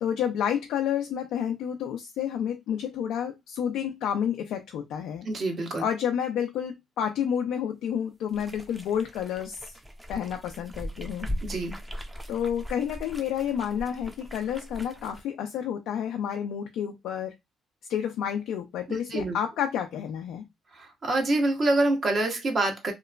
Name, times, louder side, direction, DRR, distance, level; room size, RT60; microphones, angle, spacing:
voice 1, 0.0-5.3 5.8-9.7 10.1-11.3 12.3-17.4 17.9-20.5, left 9 dB, 80° left, 0.4 m, -30 dB
voice 2, 5.2-5.9 11.4-11.8 18.9-19.4 20.7-22.9, right 2 dB, 50° right, 1.0 m, -26 dB
sound 1, 8.3-15.2, equal, 10° right, 0.6 m, -39 dB
2.9 x 2.1 x 2.4 m
supercardioid pair, 65°, 0 cm